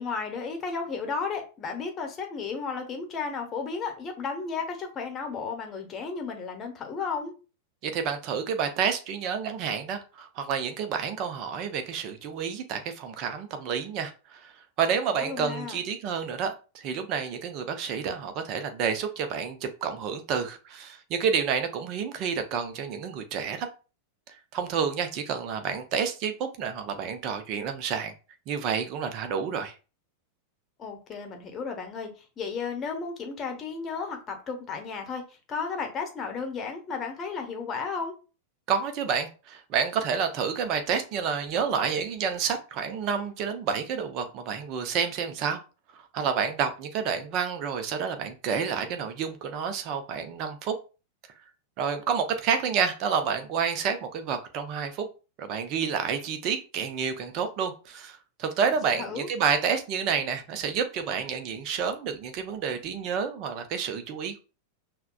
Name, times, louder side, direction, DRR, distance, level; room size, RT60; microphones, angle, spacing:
voice 1, 0.0-7.3 15.1-15.8 30.8-38.1 58.7-59.3, left 5 dB, 25° left, 0.9 m, -34 dB
voice 2, 7.8-14.5 14.8-23.7 24.5-28.1 28.5-29.7 38.7-45.6 45.9-50.7 51.8-55.1 55.4-64.4, right 6 dB, 40° right, 0.6 m, -29 dB
5.7 x 2.2 x 2.4 m
figure-of-eight pair, 90°, 0 cm